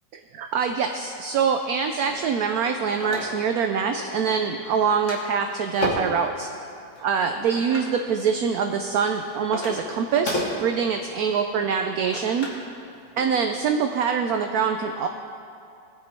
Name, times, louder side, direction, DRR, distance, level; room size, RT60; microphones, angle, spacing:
voice 1, 0.1-6.5 7.0-12.5 13.2-15.1, right 6 dB, 70° right, 5 dB, 0.9 m, -24 dB
sound 1, 2.1-3.6 4.0-4.5 4.8-6.2 6.9-7.9 8.6-12.7 13.0-13.2, left 1 dB, 40° left, 2.0 m, -33 dB
20.0 x 7.2 x 4.4 m, 2.5 s
omnidirectional pair, 2.0 m